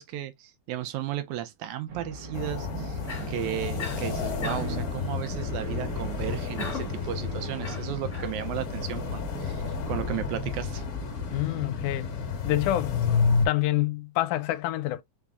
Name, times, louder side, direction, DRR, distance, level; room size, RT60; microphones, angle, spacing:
voice 1, 0.0-3.0 3.3-10.8, right 12 dB, 80° right, 2.0 m, -34 dB
sound 1, 1.9-12.7, right 3 dB, 50° right, 1.1 m, -41 dB
sound 2, 2.3-13.5, left 5 dB, 50° left, 1.8 m, -31 dB
Cough, 3.1-3.4 3.8-4.1 4.4-4.8 6.6-7.0 7.6-8.4, left 3 dB, 35° left, 1.3 m, -37 dB
voice 2, 11.3-12.1 12.4-13.0 13.5-15.0, left 15 dB, 85° left, 2.0 m, -27 dB
5.0 x 3.5 x 2.4 m
omnidirectional pair, 3.5 m